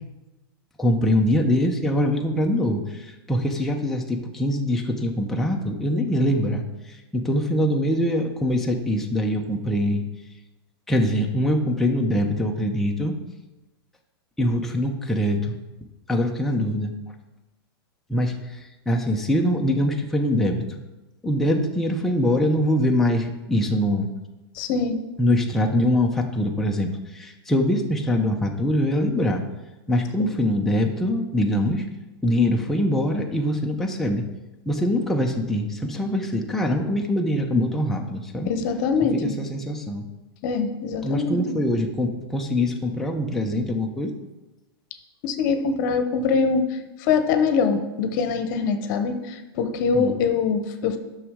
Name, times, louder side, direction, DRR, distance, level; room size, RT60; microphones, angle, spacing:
voice 1, 0.8-10.0 10.9-13.2 14.4-15.5 16.1-16.9 18.1-18.6 18.9-20.6 21.2-24.1 25.2-29.4 29.9-31.8 32.2-34.2 34.7-38.5 39.2-40.0 41.0-44.1 49.9-50.1, left 1 dB, ahead, 1 dB, 0.8 m, -23 dB
voice 2, 24.5-25.0 38.4-39.3 40.4-41.6 45.2-51.0, left 5 dB, 50° left, 8 dB, 1.0 m, -23 dB
9.6 x 6.3 x 3.7 m, 1.0 s
hypercardioid pair, 110°, 13 cm